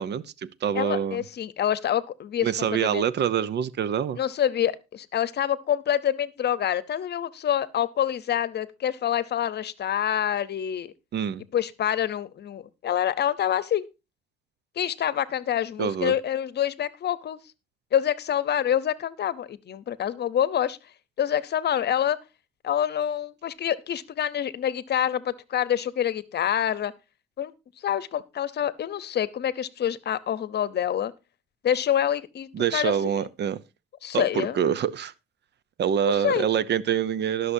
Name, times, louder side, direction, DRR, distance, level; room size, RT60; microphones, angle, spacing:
voice 1, 0.0-1.2 2.4-4.2 11.1-11.4 15.8-16.1 32.5-33.6 34.1-35.1 35.8-37.5, right 8 dB, 60° right, 0.7 m, -26 dB
voice 2, 0.7-3.0 4.2-10.9 11.5-13.9 14.8-17.4 17.9-20.8 21.2-22.2 22.6-26.9 27.4-27.5 27.8-31.1 31.6-33.2 34.0-34.6 36.1-36.5, left 10 dB, 55° left, 0.8 m, -26 dB
19.5 x 6.6 x 2.7 m
cardioid pair, 90°, 20 cm